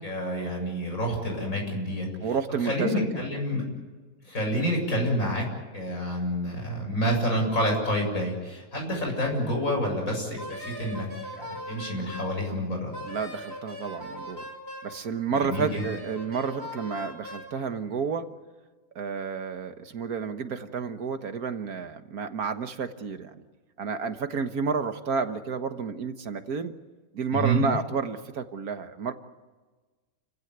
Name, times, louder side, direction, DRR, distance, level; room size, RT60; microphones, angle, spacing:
voice 1, 0.0-2.1 2.6-3.6 4.2-5.5 5.7-11.1 11.4-12.9 15.3-15.9 27.3-27.6, equal, 65° left, 1 dB, 7.8 m, -28 dB
voice 2, 2.2-3.3 13.0-14.4 14.8-18.3 19.0-23.4 23.8-26.7 27.1-29.1, right 5 dB, 85° right, 8 dB, 1.9 m, -31 dB
Wind instrument woodwind instrument, 10.4-12.4 12.9-15.0 15.5-17.5, equal, 15° right, 6.3 m, -40 dB
29.5 x 16.0 x 9.4 m, 1.3 s
omnidirectional pair, 1.5 m